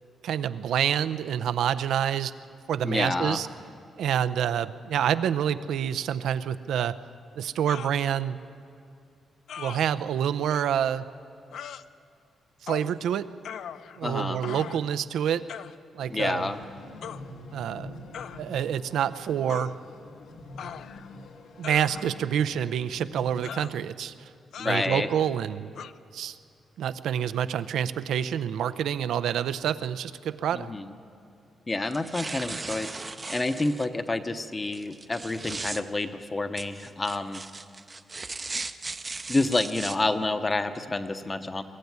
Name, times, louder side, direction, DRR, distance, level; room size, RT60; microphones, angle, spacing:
voice 1, 0.2-2.3 2.7-3.5 4.0-7.0 7.4-8.4 9.6-11.0 12.6-13.3 14.0-15.5 16.0-16.5 17.5-17.9 18.3-19.7 21.6-24.1 24.6-25.9 26.1-26.4 26.8-30.7, right 9 dB, 90° right, 12 dB, 0.6 m, -27 dB
voice 2, 2.8-3.4 14.0-14.4 16.1-16.6 24.6-25.1 30.5-30.9 31.7-32.9 33.3-37.4 39.3-41.6, left 2 dB, 20° left, 9 dB, 0.8 m, -28 dB
sound 1, 7.7-8.0 9.5-9.8 10.5-10.6 11.5-11.8 12.7-12.9 13.4-14.1 14.4-14.9 15.5-15.7 17.0-17.2 18.1-18.4 19.5-19.7 20.6-21.1 21.6-22.3 23.4-23.8 24.5-24.9 25.7-25.9, left 8 dB, 65° left, 0.5 m, -39 dB
sound 2, 16.0-23.6, left 2 dB, 85° left, 2.0 m, -45 dB
sound 3, 31.9-33.9 34.7-35.8 36.6-40.0, right 3 dB, 20° right, 0.5 m, -37 dB
22.5 x 15.0 x 9.5 m, 2.4 s
wide cardioid pair, 180°, 0 cm